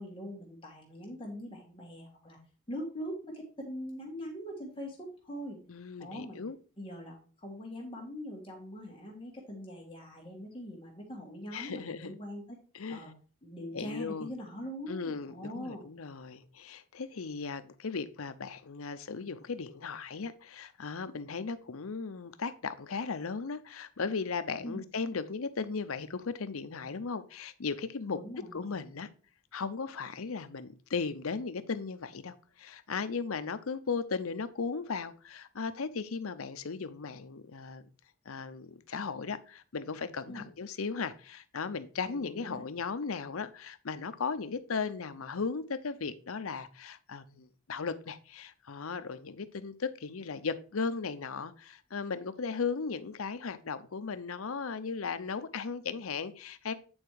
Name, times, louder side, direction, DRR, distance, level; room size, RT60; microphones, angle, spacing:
voice 1, 0.0-2.4 2.7-5.6 6.0-6.4 6.8-12.6 12.9-13.1 13.4-15.8 24.6-24.8 28.1-28.7 40.3-40.4 42.1-42.6, equal, 25° left, -1 dB, 1.7 m, -42 dB
voice 2, 5.7-6.6 11.5-12.1 12.7-13.1 13.7-14.3 14.9-28.2 28.5-29.1 29.5-37.9 38.2-56.7, left 5 dB, 80° left, 12 dB, 0.7 m, -36 dB
8.9 x 4.4 x 4.8 m, 0.38 s
head